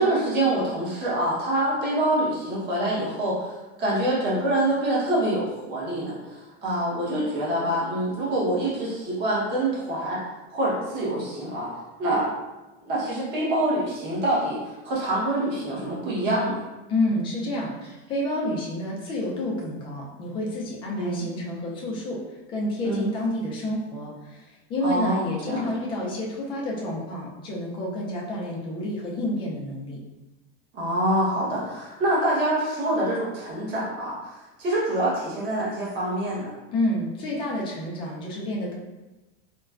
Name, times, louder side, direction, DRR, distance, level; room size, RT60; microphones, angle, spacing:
voice 1, 0.0-11.7 12.0-12.3 12.8-16.6 21.0-21.2 22.8-23.1 24.8-25.7 30.7-34.2 34.6-36.5, right 1 dB, 30° right, -7 dB, 1.0 m, -26 dB
voice 2, 16.9-22.2 22.5-24.4 24.7-30.0 36.7-38.8, left 1 dB, 15° left, -3 dB, 0.4 m, -29 dB
4.1 x 2.1 x 2.4 m, 1.1 s
supercardioid pair, 160°, 33 cm